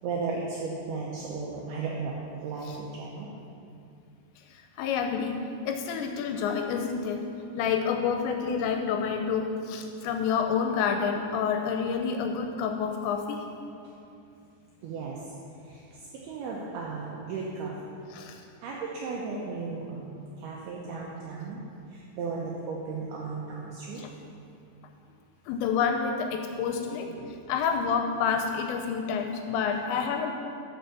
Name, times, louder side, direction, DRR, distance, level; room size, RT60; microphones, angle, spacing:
voice 1, 0.0-3.3 13.8-13.9 14.8-15.2 15.6-17.8 18.6-21.6 21.9-24.0 26.9-27.4, right 4 dB, 85° right, -3 dB, 2.3 m, -35 dB
voice 2, 4.4-5.4 5.7-7.3 7.6-13.4 18.1-18.4 24.0-24.1 25.5-30.3, left 6 dB, 85° left, 4 dB, 2.7 m, -29 dB
7.9 x 5.3 x 6.7 m, 2.6 s
omnidirectional pair, 5.4 m